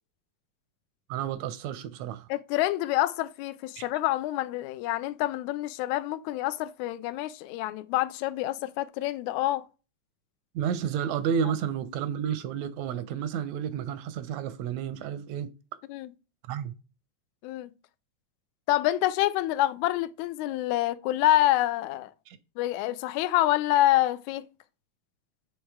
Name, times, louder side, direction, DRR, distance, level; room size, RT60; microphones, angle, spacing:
voice 1, 1.1-2.3 3.8-3.9 10.5-15.5 16.5-16.7 22.3-22.4, right 8 dB, 80° right, 1.6 m, -31 dB
voice 2, 2.3-9.6 15.9-16.1 17.4-17.7 18.7-22.1 22.6-24.5, left 15 dB, 80° left, 1.7 m, -27 dB
6.3 x 3.3 x 4.6 m
omnidirectional pair, 3.7 m